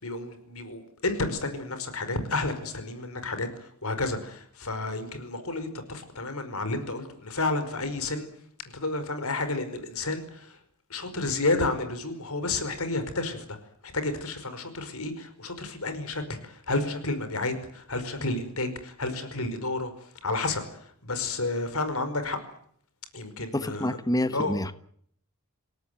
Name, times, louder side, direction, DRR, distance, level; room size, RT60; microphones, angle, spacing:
voice 1, 0.0-8.3 8.7-10.6 10.9-13.6 13.8-19.9 20.2-22.4 23.1-24.0 24.3-24.5, left 2 dB, 75° left, 5.1 m, -31 dB
voice 2, 23.5-24.7, left 1 dB, 15° left, 1.2 m, -27 dB
27.5 x 17.5 x 9.4 m
head